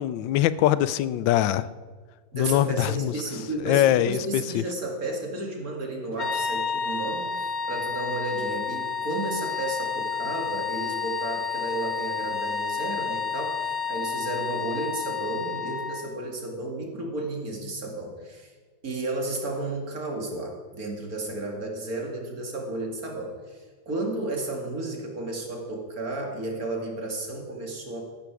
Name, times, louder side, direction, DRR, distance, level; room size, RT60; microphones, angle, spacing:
voice 1, 0.0-1.7 2.3-3.1 3.7-4.6, left 12 dB, 90° left, 1.3 m, -23 dB
voice 2, 2.3-18.5 18.8-28.0, right 2 dB, 50° right, 2.6 m, -33 dB
sound 1, 6.2-16.2, left 6 dB, 45° left, 1.0 m, -30 dB
13.5 x 12.0 x 4.8 m
omnidirectional pair, 2.0 m